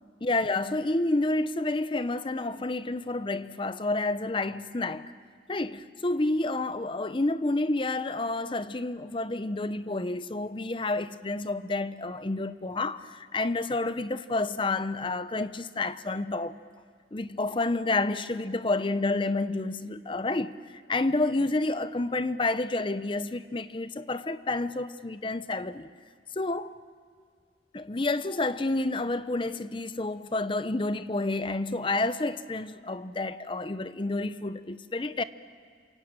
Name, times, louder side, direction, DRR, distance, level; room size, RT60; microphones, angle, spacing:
voice 1, 0.2-5.1 5.5-16.6 17.1-25.9 26.4-26.7 27.7-35.2, left 2 dB, 30° left, 0.7 m, -29 dB
28.0 x 22.5 x 8.9 m
head